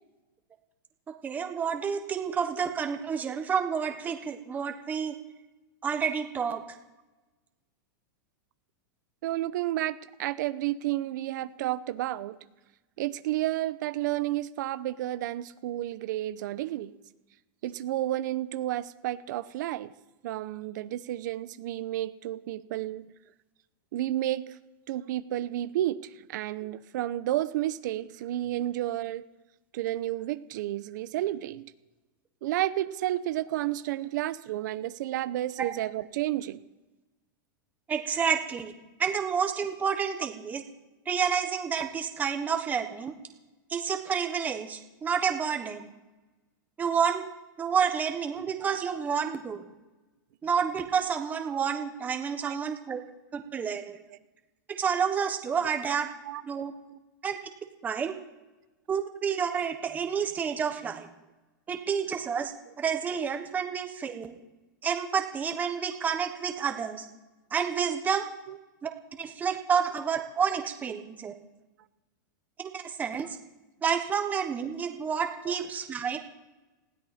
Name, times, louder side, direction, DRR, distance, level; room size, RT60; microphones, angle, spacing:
voice 1, 1.2-5.1 5.8-6.6 35.6-35.7 37.9-38.7 39.0-40.6 41.1-43.1 43.7-45.9 46.8-47.3 47.6-49.6 50.4-53.0 53.3-54.0 54.8-56.1 56.4-56.7 57.2-57.4 57.8-58.2 58.9-61.1 61.7-64.4 64.8-67.1 67.5-68.3 68.8-68.9 69.2-71.3 72.6-73.4 73.8-76.2, right 7 dB, 15° right, 5 dB, 1.2 m, -29 dB
voice 2, 2.2-2.6 9.2-12.4 13.0-16.9 17.6-19.9 20.2-23.1 23.9-24.6 24.9-29.3 29.7-31.7 32.4-36.6 52.4-53.0 55.9-56.0 56.2-56.4 56.9-57.0 68.5-68.6 75.5-75.6, right 14 dB, 60° right, 13 dB, 0.8 m, -31 dB
20.0 x 16.0 x 4.3 m, 1.1 s
supercardioid pair, 155°, 11 cm